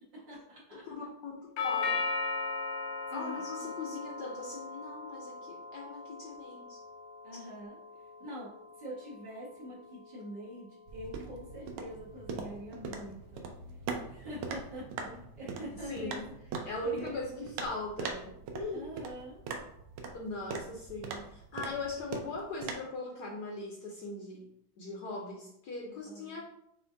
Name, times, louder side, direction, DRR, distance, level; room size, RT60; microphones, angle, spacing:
voice 1, 0.1-0.8 3.1-3.7 7.2-7.8 8.2-13.5 14.1-15.1 15.4-16.3 16.8-17.5 18.7-19.4 25.8-26.4, equal, 60° right, -7 dB, 2.1 m, -45 dB
voice 2, 0.7-2.0 3.1-6.8 15.7-16.3 16.7-18.9 20.1-24.4 24.8-26.4, left 2 dB, 65° left, -1 dB, 1.1 m, -40 dB
Doorbell, 1.6-9.6, left 4 dB, 85° left, 1.5 m, -38 dB
sound 1, 10.9-22.7, right 4 dB, 80° right, 1.5 m, -42 dB
6.8 x 2.5 x 2.6 m, 0.75 s
omnidirectional pair, 2.3 m